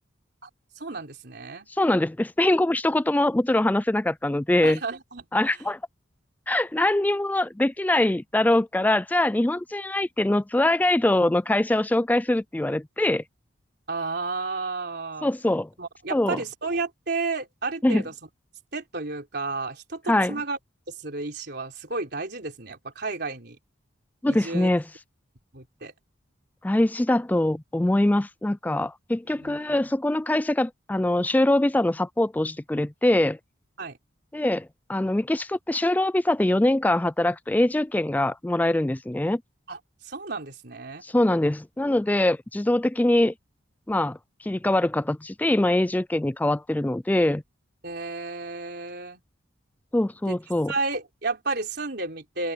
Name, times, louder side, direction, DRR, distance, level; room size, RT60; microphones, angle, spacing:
voice 1, 0.8-1.7 4.6-5.2 13.9-15.3 15.8-18.1 18.7-20.6 20.9-23.6 24.3-24.7 25.5-25.9 29.3-29.6 33.8-34.0 39.7-41.0 47.8-49.2 50.3-50.4 50.7-52.5, right 3 dB, 55° right, 3.8 m, -32 dB
voice 2, 1.8-4.8 5.3-5.8 6.5-13.2 15.2-15.7 16.1-16.4 17.8-18.0 20.1-20.4 24.2-24.8 26.6-33.4 34.3-39.4 41.0-43.3 43.9-44.2 44.4-47.4 49.9-50.7, left 1 dB, 10° left, 0.3 m, -23 dB
head